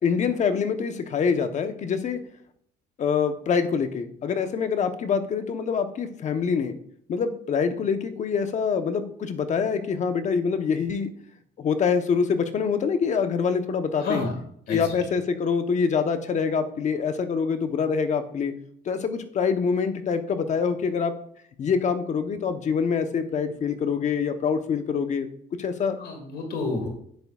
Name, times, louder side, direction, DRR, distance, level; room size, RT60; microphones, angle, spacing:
voice 1, 0.0-2.2 3.0-6.7 7.1-11.1 11.6-14.3 14.7-18.5 18.8-21.1 21.6-25.3 25.6-26.0, left 6 dB, 45° left, 8 dB, 0.9 m, -25 dB
voice 2, 14.0-14.3 14.7-15.0 26.0-26.9, left 3 dB, 70° left, 4 dB, 1.9 m, -29 dB
9.7 x 7.8 x 2.4 m, 0.66 s
cardioid pair, 110°, 17 cm